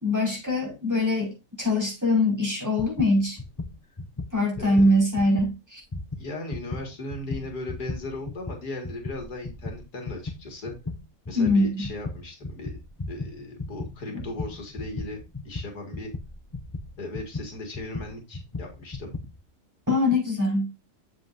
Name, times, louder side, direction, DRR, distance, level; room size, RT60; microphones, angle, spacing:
voice 1, 0.0-3.4 4.3-5.8 11.3-11.9 14.1-14.2 19.9-20.7, left 1 dB, 10° right, 5.0 m, -23 dB
sound 1, 2.8-5.5 5.8-19.4, left 3 dB, 30° left, 0.4 m, -36 dB
voice 2, 4.6-4.9 6.2-10.7 11.3-12.7 13.1-16.1 17.0-19.1, left 2 dB, 70° left, 2.4 m, -37 dB
8.0 x 7.7 x 2.6 m
omnidirectional pair, 1.7 m